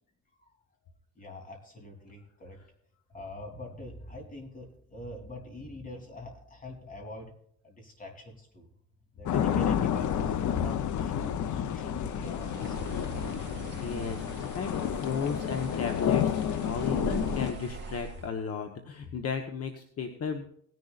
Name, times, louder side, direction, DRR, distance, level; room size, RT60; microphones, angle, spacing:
voice 1, 1.2-2.6 3.1-7.3 7.6-8.7 9.1-13.6, left 1 dB, 30° left, 2 dB, 3.4 m, -45 dB
sound 1, 9.3-17.5, left 9 dB, 80° left, 0.8 m, -30 dB
Bird, 12.1-18.3, right 4 dB, 35° right, 2.4 m, -42 dB
voice 2, 13.8-20.4, left 6 dB, 55° left, 5 dB, 1.2 m, -34 dB
18.5 x 11.0 x 2.5 m, 0.68 s
cardioid pair, 150°, 29 cm